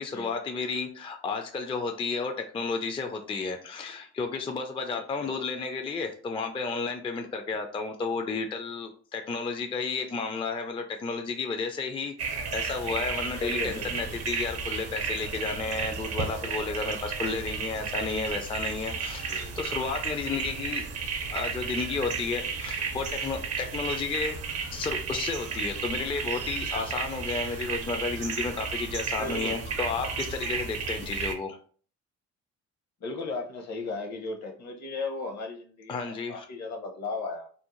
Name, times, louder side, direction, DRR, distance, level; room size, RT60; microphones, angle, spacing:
voice 1, 0.0-20.8 21.3-24.4 24.7-31.6 35.9-36.5, left 4 dB, 20° left, 5 dB, 0.3 m, -32 dB
voice 2, 4.9-5.3 13.4-14.0 19.3-19.6 29.2-29.6 33.0-37.5, left 3 dB, 60° left, 4 dB, 0.8 m, -36 dB
sound 1, 12.2-31.3, right 5 dB, 55° right, 0.6 m, -33 dB
2.6 x 2.0 x 2.9 m, 0.43 s
cardioid pair, 90°, 30 cm